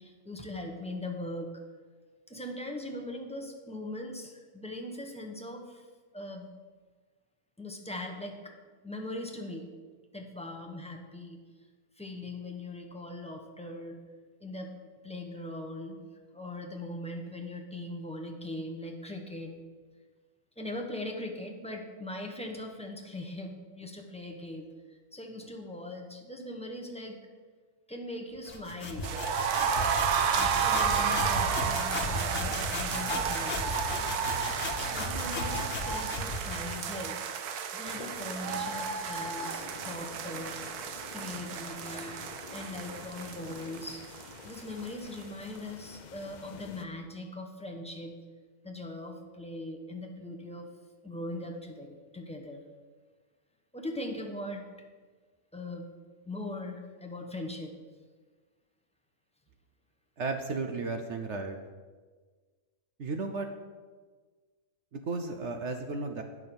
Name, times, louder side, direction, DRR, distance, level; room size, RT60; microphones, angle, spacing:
voice 1, 0.0-1.5 2.3-5.8 6.1-6.5 7.6-8.5 8.8-9.7 10.1-11.4 12.0-14.0 14.4-14.7 15.0-16.0 16.3-19.5 20.6-27.2 27.9-29.1 30.3-33.6 34.8-37.3 37.7-40.5 41.1-44.1 44.4-48.2 48.6-50.7 51.0-52.6 53.7-54.6 55.5-55.9 56.2-57.7, left 1 dB, 5° left, 0 dB, 0.8 m, -40 dB
sound 1, 28.4-37.1, left 2 dB, 50° left, 1.5 m, -35 dB
sound 2, 29.0-44.9 45.1-45.2 45.6-45.7, right 7 dB, 80° right, 1.2 m, -32 dB
sound 3, 37.9-46.9, left 6 dB, 75° left, 0.4 m, -48 dB
voice 2, 60.2-61.6 63.0-63.5 64.9-66.2, right 3 dB, 60° right, 6 dB, 0.9 m, -34 dB
9.4 x 6.0 x 7.0 m, 1.4 s
omnidirectional pair, 1.6 m